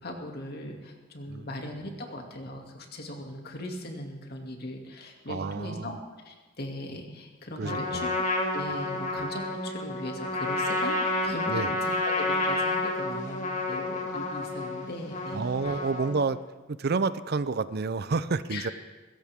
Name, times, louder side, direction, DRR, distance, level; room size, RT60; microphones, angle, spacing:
voice 1, 0.0-8.1 8.5-15.8 18.5-18.7, left 1 dB, 55° left, 2 dB, 2.5 m, -39 dB
voice 2, 5.3-5.9 7.6-8.2 11.5-11.7 15.3-16.4 16.7-18.7, right 4 dB, 55° right, 15 dB, 0.5 m, -29 dB
Trumpet, 7.6-16.3, left 2 dB, 40° left, 2.3 m, -30 dB
21.0 x 17.0 x 3.6 m, 1.3 s
head